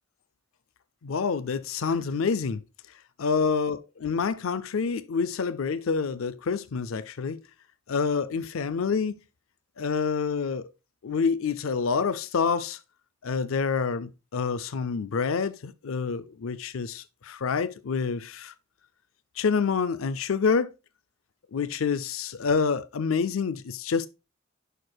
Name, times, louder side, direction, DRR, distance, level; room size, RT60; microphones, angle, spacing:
voice 1, 1.0-2.6 3.2-7.4 7.9-9.2 9.8-10.6 11.0-12.8 13.2-18.5 19.4-20.7 21.5-24.1, left 5 dB, 75° left, 0.5 m, -27 dB
11.0 x 4.5 x 2.3 m
head